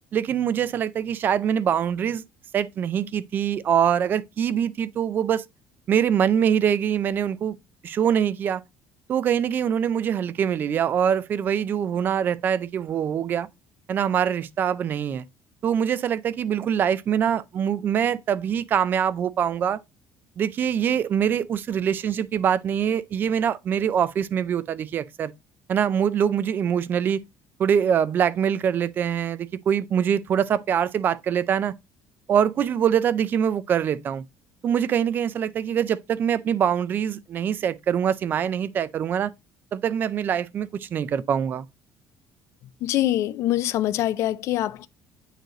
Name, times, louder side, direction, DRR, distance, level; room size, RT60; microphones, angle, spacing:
voice 1, 0.1-2.2 2.5-5.4 5.9-7.5 7.8-8.6 9.1-13.5 13.9-15.2 15.6-19.8 20.4-25.3 25.7-27.2 27.6-31.7 32.3-34.2 34.6-39.3 39.7-41.7, right 8 dB, 35° right, 0.5 m, -24 dB
voice 2, 42.8-44.9, left 14 dB, 55° left, 0.5 m, -24 dB
9.1 x 3.2 x 3.8 m
cardioid pair, 155°, 6 cm